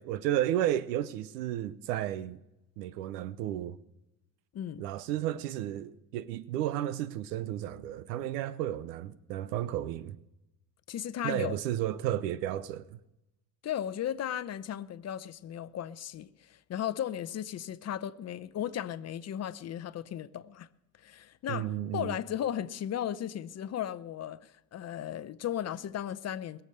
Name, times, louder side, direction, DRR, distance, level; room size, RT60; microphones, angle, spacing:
voice 1, 0.0-2.4 2.8-3.8 4.8-10.2 11.2-13.0 21.5-22.2, right 12 dB, 90° right, 0.8 m, -33 dB
voice 2, 4.5-4.8 10.9-11.6 13.6-20.7 21.0-21.7 21.9-26.6, left 10 dB, 35° left, 0.7 m, -36 dB
21.5 x 7.2 x 6.6 m
supercardioid pair, 105°, 48 cm